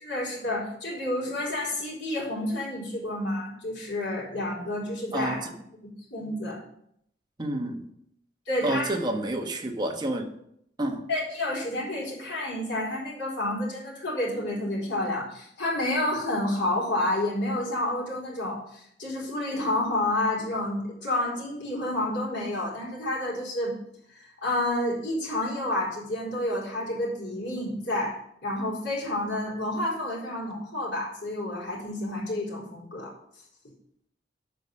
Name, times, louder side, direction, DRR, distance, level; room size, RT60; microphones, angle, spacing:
voice 1, 0.0-5.5 5.8-6.6 8.5-8.9 10.9-23.7 24.1-33.1, left 1 dB, 90° left, -5 dB, 4.4 m, -30 dB
voice 2, 7.4-7.9 8.6-10.2 10.8-11.0, right 1 dB, 25° right, 3 dB, 1.2 m, -29 dB
8.2 x 5.5 x 6.5 m, 0.72 s
head